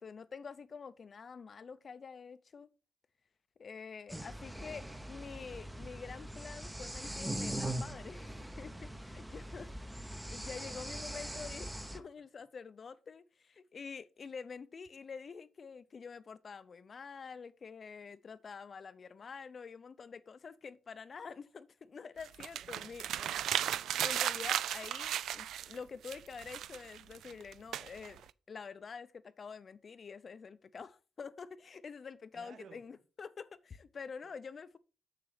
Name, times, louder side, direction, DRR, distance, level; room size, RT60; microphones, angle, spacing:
voice 1, 0.0-2.7 3.6-8.3 8.6-9.7 10.0-11.7 11.9-23.0 24.0-28.2 28.5-34.8, left 5 dB, 35° left, 0.5 m, -47 dB
sound 1, 4.1-12.0, right 1 dB, 5° right, 0.6 m, -42 dB
voice 2, 10.6-12.1 22.6-23.9 32.3-32.8 34.2-34.3, right 5 dB, 60° right, 1.2 m, -57 dB
sound 2, 22.2-25.8 26.0-28.3, right 11 dB, 85° right, 0.3 m, -35 dB
6.9 x 6.7 x 4.8 m
cardioid pair, 160°, 0 cm